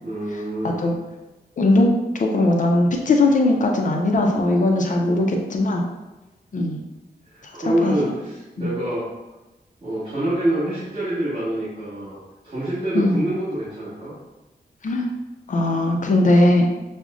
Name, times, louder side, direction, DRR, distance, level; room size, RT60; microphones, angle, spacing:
voice 1, 0.0-0.8 5.1-5.2 7.3-9.0 9.8-12.2 12.4-14.1, right 1 dB, 30° right, -15 dB, 1.4 m, -26 dB
voice 2, 1.6-1.9 2.2-5.8 6.5-6.8 7.7-7.9 8.6-8.7 12.9-13.2 14.8-15.1 15.5-16.7, left 2 dB, 50° left, 1 dB, 0.5 m, -19 dB
6.0 x 2.1 x 2.4 m, 1.1 s
wide cardioid pair, 160°, 17 cm